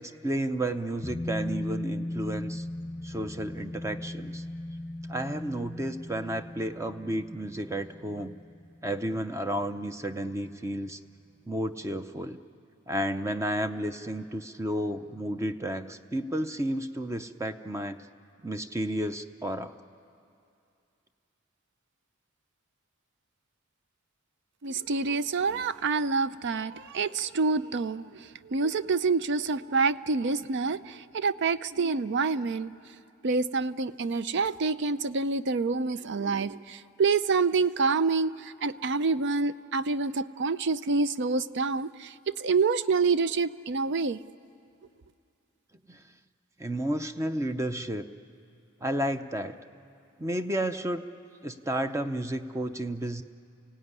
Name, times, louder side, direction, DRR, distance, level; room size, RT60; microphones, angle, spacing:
voice 1, 0.0-2.7 3.0-4.4 5.1-8.4 8.8-11.0 11.5-12.4 12.9-18.0 18.4-19.7 45.9-46.0 46.6-48.1 48.8-49.6 50.2-51.0 51.4-53.2, right 1 dB, 15° right, 9 dB, 0.6 m, -32 dB
sound 1, 1.0-10.1 10.4-10.5, left 1 dB, 10° left, 0.9 m, -38 dB
voice 2, 24.6-32.7 33.2-44.2, right 4 dB, 55° right, 15 dB, 0.5 m, -27 dB
29.0 x 16.5 x 9.7 m, 2.5 s
head